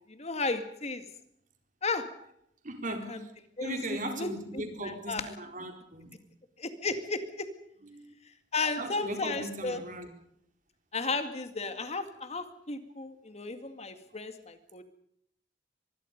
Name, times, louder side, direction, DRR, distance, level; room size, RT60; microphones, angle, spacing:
voice 1, 0.1-1.0 1.8-2.1 3.1-3.2 3.6-5.3 6.6-7.5 8.5-9.8 10.9-14.8, left 3 dB, 40° left, 2.1 m, -34 dB
voice 2, 2.6-3.3 3.6-6.1 7.8-8.1 8.8-10.1, right 1 dB, 50° right, 4.4 m, -38 dB
25.0 x 22.0 x 5.3 m
head